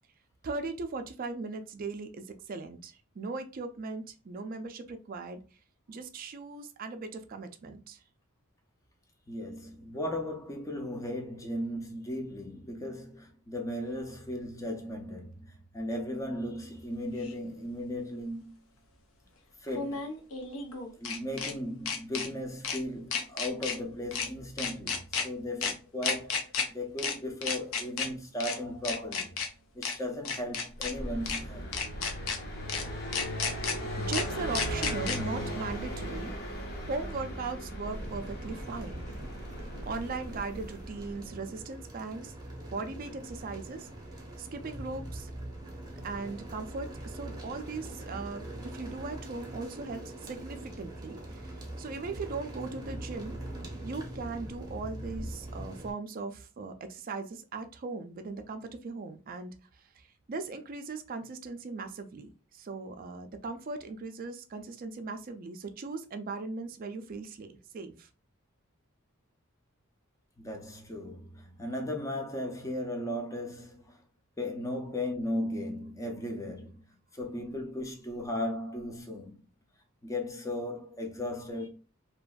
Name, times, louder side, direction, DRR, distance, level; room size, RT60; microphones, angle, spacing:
voice 1, 0.4-5.4 5.9-8.0 34.0-36.3 36.8-39.0 39.8-42.3 42.7-43.9 44.4-45.3 46.0-53.4 53.8-59.5 60.0-68.1, right 3 dB, 40° right, 0.4 m, -38 dB
voice 2, 9.3-18.5 19.6-20.1 21.0-29.4 29.7-31.7 70.4-74.0 74.4-76.8 77.1-79.4 80.0-81.7, left 1 dB, 15° left, 0.5 m, -36 dB
sound 1, 17.2-17.3 19.7-21.5 21.9-22.3 22.6-22.8 23.1-23.8 24.1-24.3 24.6-25.2 25.6-25.7 26.0-26.6 27.0-27.1 27.4-28.1 28.4-28.5 28.8-29.5 29.8-29.9 30.2-30.9 31.3-31.4 31.7-32.4 32.7-32.8 33.1-33.7 34.1-34.2 34.5-35.2, left 5 dB, 75° left, 0.6 m, -32 dB
Car passing by, 30.7-41.4, equal, 50° left, 0.8 m, -38 dB
sound 2, 37.8-55.9, right 1 dB, 20° right, 0.7 m, -43 dB
2.8 x 2.5 x 2.2 m
head